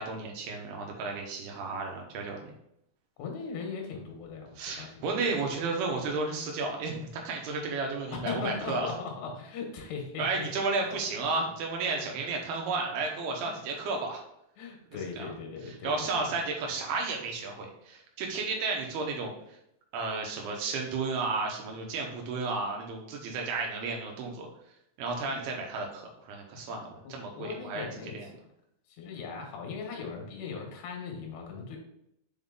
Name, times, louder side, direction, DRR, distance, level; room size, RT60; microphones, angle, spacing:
voice 1, 0.0-2.5 4.6-8.9 10.2-14.2 15.2-15.3 15.6-19.6 19.9-24.5 25.0-28.3, right 3 dB, 80° right, 1 dB, 3.0 m, -33 dB
voice 2, 3.2-5.0 5.3-5.4 8.1-10.5 10.8-10.9 11.3-11.4 13.5-13.6 14.6-16.3 26.7-26.8 27.0-28.2 28.9-31.8, left 5 dB, 85° left, 1 dB, 3.2 m, -39 dB
6.9 x 4.0 x 3.7 m, 0.77 s
omnidirectional pair, 4.5 m